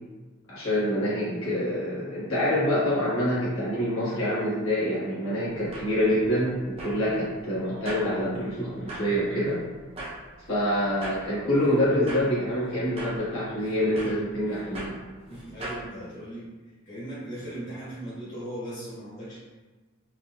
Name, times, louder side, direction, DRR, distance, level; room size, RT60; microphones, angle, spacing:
voice 1, 0.5-9.6 10.5-15.0, equal, 70° left, -10 dB, 1.3 m, -26 dB
sound 1, 5.4-15.9, right 1 dB, 25° right, 0.4 m, -42 dB
voice 2, 15.3-16.5 16.9-19.4, right 1 dB, 40° left, -11 dB, 1.2 m, -38 dB
4.2 x 2.3 x 2.2 m, 1.3 s
head